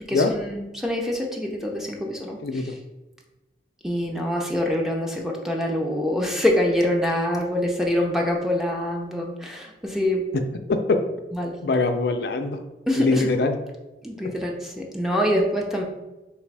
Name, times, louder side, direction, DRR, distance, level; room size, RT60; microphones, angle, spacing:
voice 1, 0.1-2.4 3.8-10.2 11.3-11.6 12.9-13.3 14.0-15.8, left 1 dB, ahead, 0 dB, 0.5 m, -25 dB
voice 2, 2.4-2.7 10.3-10.4 10.7-11.0 11.6-12.6 13.0-13.6, left 3 dB, 65° left, 7 dB, 0.4 m, -22 dB
3.2 x 3.0 x 4.6 m, 1.1 s
head